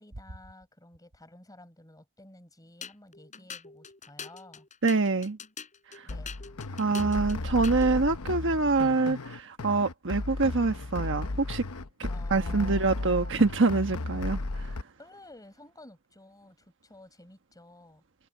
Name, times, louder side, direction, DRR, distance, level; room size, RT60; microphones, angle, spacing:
voice 1, 0.0-4.7 6.0-6.4 12.0-13.3 15.0-18.0, left 1 dB, 15° left, 6.6 m, -52 dB
sound 1, 2.8-8.0, left 6 dB, 35° left, 5.5 m, -44 dB
voice 2, 4.8-5.4 5.9-6.1 6.8-11.6 12.0-14.8, right 3 dB, 60° right, 1.3 m, -26 dB
sound 2, 6.1-14.8, left 2 dB, 70° left, 0.9 m, -34 dB
head